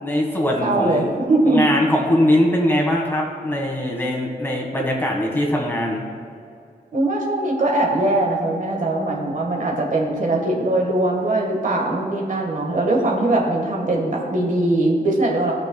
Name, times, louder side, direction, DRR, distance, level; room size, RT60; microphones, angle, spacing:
voice 1, 0.0-1.1 1.5-6.0, left 1 dB, 15° left, -2 dB, 1.6 m, -21 dB
voice 2, 0.6-1.6 6.9-15.5, right 2 dB, 55° right, -1 dB, 1.5 m, -21 dB
16.5 x 6.5 x 2.3 m, 2.4 s
wide cardioid pair, 140°, 16 cm